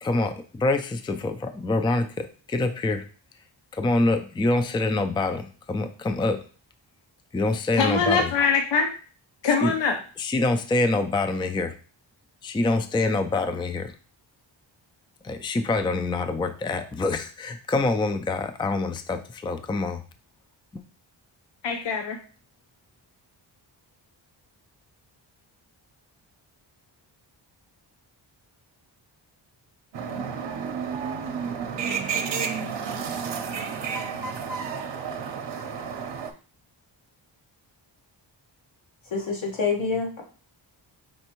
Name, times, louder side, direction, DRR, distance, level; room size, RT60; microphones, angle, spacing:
voice 1, 0.0-3.1 3.7-6.4 7.3-8.3 9.5-9.7 10.2-11.7 12.4-13.9 15.2-20.0 20.7-20.8, left 2 dB, 10° left, 8 dB, 0.3 m, -25 dB
voice 2, 7.8-8.9 9.4-10.0 21.6-22.2, left 5 dB, 65° left, 4 dB, 0.7 m, -23 dB
sound 1, 29.9-36.3, right 6 dB, 65° right, 0.7 m, -31 dB
voice 3, 39.1-40.2, left 4 dB, 80° left, 0 dB, 1.3 m, -26 dB
5.3 x 3.2 x 3.0 m, 0.39 s
wide cardioid pair, 95°, 46 cm